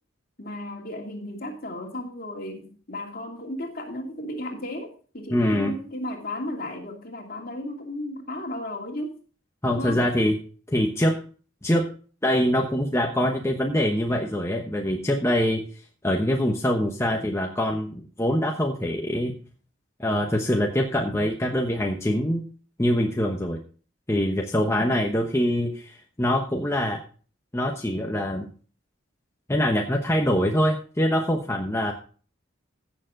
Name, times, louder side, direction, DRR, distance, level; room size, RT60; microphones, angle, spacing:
voice 1, 0.4-9.2 9.7-10.1 24.6-25.0, left 1 dB, 45° left, 1 dB, 2.7 m, -34 dB
voice 2, 5.3-5.7 9.6-10.4 10.7-11.2 11.6-11.9 12.2-15.6 16.0-19.3 20.0-22.4 22.8-23.6 24.1-27.0 27.5-28.5 29.5-31.9, equal, 15° left, 1 dB, 1.0 m, -24 dB
15.5 x 6.9 x 3.8 m, 0.39 s
head